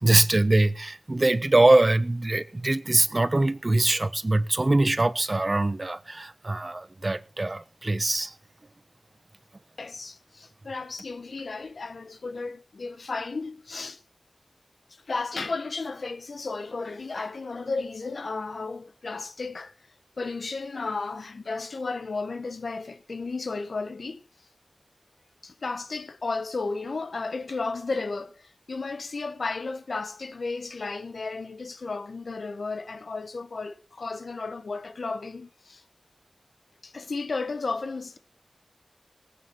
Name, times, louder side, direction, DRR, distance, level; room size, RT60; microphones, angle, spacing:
voice 1, 0.0-8.3, right 2 dB, 40° right, 1.1 m, -23 dB
voice 2, 9.8-14.0 15.1-19.7 20.2-24.2 25.4-35.8 36.8-38.2, left 3 dB, 80° left, 1.5 m, -33 dB
18.5 x 9.2 x 6.2 m
wide cardioid pair, 70°, 0 cm